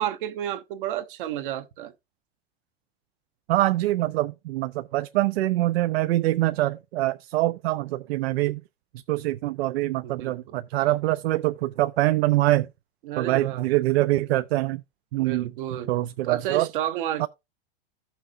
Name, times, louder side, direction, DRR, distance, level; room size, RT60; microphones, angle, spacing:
voice 1, 0.0-1.9 10.0-10.4 13.0-13.7 15.2-15.9 16.2-17.3, right 11 dB, 55° right, 1.0 m, -31 dB
voice 2, 3.5-8.6 9.1-12.7 13.2-14.8 15.1-15.5 15.9-16.7 17.2-17.3, right 16 dB, 80° right, 0.5 m, -24 dB
15.5 x 5.8 x 2.5 m
supercardioid pair, 180°, 31 cm